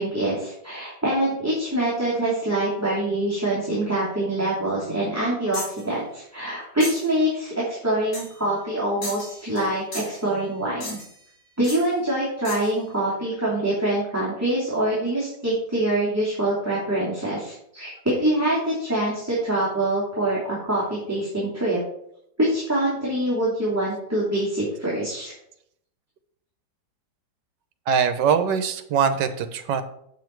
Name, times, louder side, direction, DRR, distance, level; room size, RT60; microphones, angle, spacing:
voice 1, 0.0-11.0 11.6-21.8 22.4-25.3, right 1 dB, 10° right, -8 dB, 2.8 m, -25 dB
sound 1, 5.5-5.8 6.8-7.1 8.1-8.4 9.0-9.7 9.9-10.3 10.8-11.2 11.6-11.9 12.5-12.7, left 2 dB, 50° left, 3.1 m, -36 dB
voice 2, 27.9-29.8, right 7 dB, 75° right, 10 dB, 1.5 m, -22 dB
7.6 x 7.4 x 4.6 m, 0.72 s
omnidirectional pair, 1.9 m